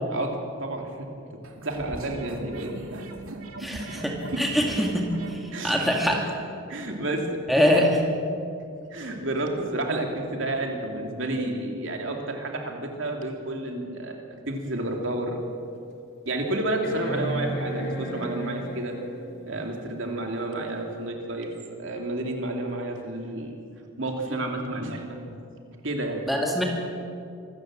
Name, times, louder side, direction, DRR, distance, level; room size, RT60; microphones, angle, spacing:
voice 1, 0.6-1.1 1.6-3.1 4.3-4.4 5.5-6.2 6.7-7.4 7.7-7.8 8.9-14.2 14.5-15.4 16.3-19.0 19.5-21.5 21.8-23.5 24.0-25.2 25.8-26.2, right 2 dB, 65° right, 2 dB, 2.9 m, -30 dB
sound 1, 1.4-6.4, right 2 dB, 85° right, 2.3 m, -40 dB
voice 2, 3.6-5.4 5.6-6.2 7.5-7.9 26.3-26.7, equal, ahead, -1 dB, 2.2 m, -23 dB
sound 2, 14.7-14.8 15.4-15.5 16.8-19.3 21.0-21.1, right 1 dB, 50° left, 2.6 m, -32 dB
25.5 x 14.0 x 7.7 m, 2.5 s
head